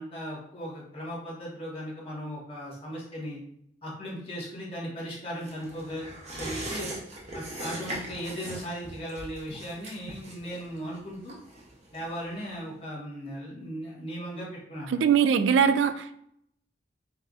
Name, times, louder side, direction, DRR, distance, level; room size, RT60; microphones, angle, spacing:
voice 1, 0.0-3.4 3.8-6.1 6.4-6.9 7.3-11.4 11.9-15.0, equal, 30° left, -6 dB, 1.3 m, -37 dB
sound 1, 5.4-12.5 12.8-12.9, right 1 dB, 35° right, 0.8 m, -40 dB
voice 2, 14.9-16.2, right 7 dB, 85° right, 12 dB, 0.3 m, -22 dB
5.4 x 2.6 x 2.4 m, 0.72 s
head